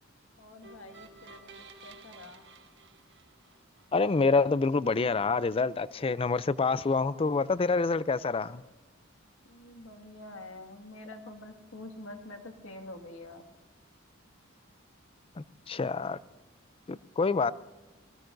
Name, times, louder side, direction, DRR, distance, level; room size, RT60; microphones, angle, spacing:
voice 1, 0.4-2.5 9.5-13.4, left 2 dB, 85° left, 1.9 m, -47 dB
sound 1, 0.6-3.9, right 3 dB, 60° right, 1.5 m, -52 dB
voice 2, 3.9-8.6 15.4-16.2 16.9-17.5, left 4 dB, 30° left, 0.4 m, -27 dB
26.5 x 20.0 x 2.6 m
head